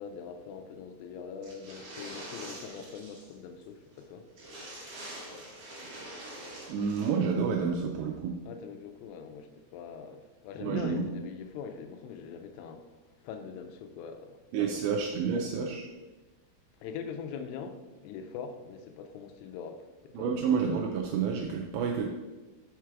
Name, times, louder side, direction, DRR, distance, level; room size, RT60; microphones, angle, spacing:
voice 1, 0.0-4.2 8.5-13.0 13.2-14.8 16.8-20.3, left 6 dB, 85° left, 6 dB, 3.1 m, -42 dB
sound 1, 1.4-3.3 3.6-3.7 4.0-4.1 4.3-7.1, right 1 dB, 60° right, 1.6 m, -45 dB
voice 2, 6.7-8.4 10.6-11.0 14.5-15.9 20.1-22.1, right 6 dB, 85° right, 1 dB, 2.5 m, -29 dB
6.6 x 4.7 x 4.5 m, 1.2 s
omnidirectional pair, 5.6 m